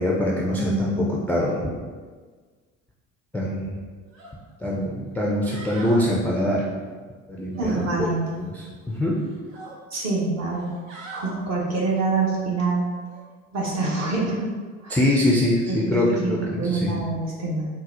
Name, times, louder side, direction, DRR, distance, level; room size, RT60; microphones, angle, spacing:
voice 1, 0.0-1.7 3.3-3.8 4.6-6.7 7.3-8.1 8.4-9.2 14.9-16.9, left 1 dB, 5° left, -4 dB, 0.3 m, -24 dB
voice 2, 0.5-1.1 7.6-8.4 9.9-10.7 11.2-12.9 13.5-14.5 14.8-15.0 15.7-17.7, right 3 dB, 45° right, -3 dB, 1.1 m, -25 dB
sound 1, 4.1-4.3 4.7-4.8 5.3-6.1 7.5-8.5 8.8-9.8 10.5-11.3 13.0-13.2, right 2 dB, 85° right, 0.8 m, -41 dB
3.9 x 2.1 x 2.6 m, 1.5 s
hypercardioid pair, 65°, 38 cm